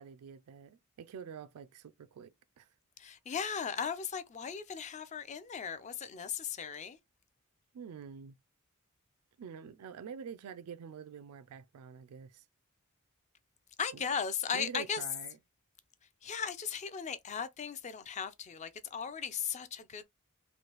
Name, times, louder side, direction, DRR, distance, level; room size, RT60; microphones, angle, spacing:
voice 1, 0.0-2.7 7.7-8.4 9.4-12.4 13.9-14.0 14.5-15.4, right 7 dB, 75° right, 0.3 m, -47 dB
voice 2, 3.0-7.0 13.8-15.0 16.2-20.0, left 7 dB, 30° left, 0.4 m, -37 dB
3.1 x 2.5 x 2.9 m
head